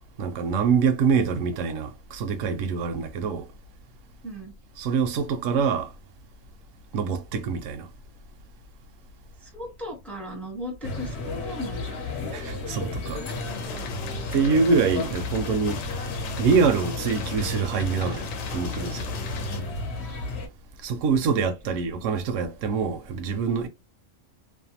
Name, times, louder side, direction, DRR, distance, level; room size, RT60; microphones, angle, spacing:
voice 1, 0.2-3.5 4.8-5.9 6.9-7.9 12.3-13.2 14.3-15.8 16.4-18.3 18.5-19.1 20.8-23.7, right 5 dB, 75° right, 0.9 m, -25 dB
voice 2, 9.4-12.0 19.4-19.8 21.4-22.0, left 1 dB, ahead, 0.6 m, -38 dB
sound 1, 10.8-20.5, left 2 dB, 60° left, 0.9 m, -33 dB
sound 2, 13.3-19.6, left 6 dB, 90° left, 1.0 m, -38 dB
2.6 x 2.2 x 2.8 m
omnidirectional pair, 1.4 m